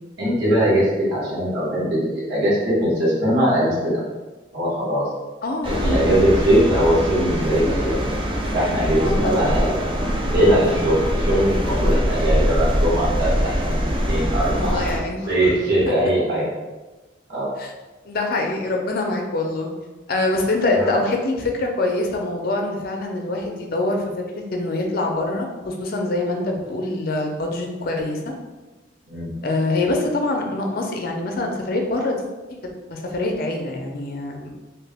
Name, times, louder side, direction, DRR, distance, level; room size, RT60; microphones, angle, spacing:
voice 1, 0.2-4.0 4.5-5.0 5.6-8.0 8.5-9.8 10.3-13.8 14.1-14.8 15.3-16.4 17.3-17.5 20.7-20.9 29.1-29.3, equal, 65° right, -7 dB, 1.5 m, -20 dB
voice 2, 5.4-6.5 9.0-9.6 14.6-15.4 15.9-16.0 17.6-17.7 18.0-19.7 20.1-24.0 24.3-28.3 29.4-32.3 32.9-34.5, left 2 dB, 55° left, 2 dB, 0.5 m, -25 dB
sound 1, 5.6-15.0, equal, 30° right, 0.5 m, -23 dB
3.0 x 2.9 x 3.4 m, 1.2 s
head